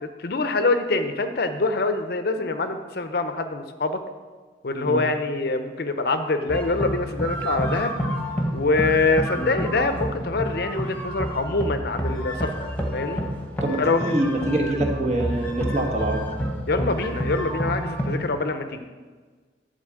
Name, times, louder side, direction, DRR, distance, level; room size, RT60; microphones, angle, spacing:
voice 1, 0.0-4.0 4.6-8.0 8.5-12.5 12.9-13.2 13.8-14.0 16.7-18.8, left 3 dB, 55° left, 8 dB, 0.7 m, -24 dB
sound 1, 6.5-18.3, equal, 10° left, 1.2 m, -29 dB
voice 2, 13.6-16.3, right 1 dB, 40° right, 1 dB, 1.4 m, -25 dB
11.5 x 4.1 x 7.5 m, 1.4 s
head